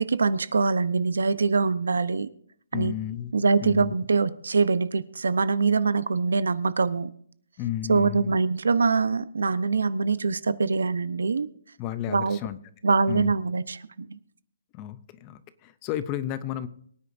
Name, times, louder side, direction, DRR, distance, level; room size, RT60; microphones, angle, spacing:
voice 1, 0.0-2.3 2.7-2.9 3.3-7.1 7.9-11.5 12.1-12.4 12.8-14.2, right 4 dB, 85° right, 16 dB, 0.8 m, -24 dB
voice 2, 2.7-3.3 3.6-3.9 7.6-8.4 11.8-12.6 13.1-13.3 14.7-16.7, left 12 dB, 20° left, 15 dB, 0.5 m, -32 dB
23.0 x 9.6 x 2.6 m, 0.62 s
hypercardioid pair, 170°, 0 cm